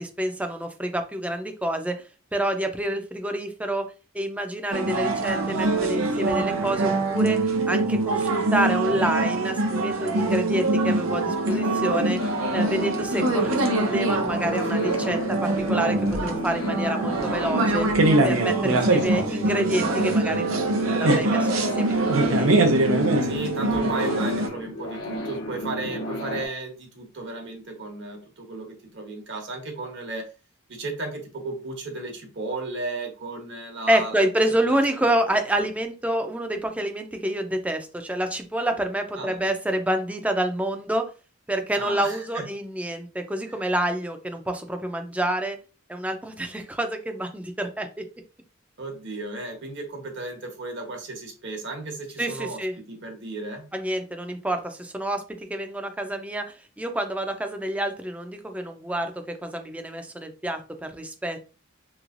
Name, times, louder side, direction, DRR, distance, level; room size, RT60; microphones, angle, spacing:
voice 1, 0.0-2.0 2.3-12.2 12.5-17.9 18.2-22.5 33.9-41.1 41.5-45.6 45.9-48.1 52.2-52.8 53.7-61.5, right 1 dB, 5° right, 5 dB, 0.4 m, -28 dB
sound 1, 4.7-24.5, right 2 dB, 90° right, 0.7 m, -23 dB
sound 2, 11.5-26.5, left 1 dB, 75° left, 0.7 m, -33 dB
voice 2, 18.7-19.5 23.2-30.3 30.7-34.3 34.6-35.1 39.2-39.5 41.7-42.5 43.5-43.6 48.8-53.7, right 2 dB, 60° right, 2 dB, 1.1 m, -35 dB
3.3 x 3.1 x 2.5 m, 0.33 s
head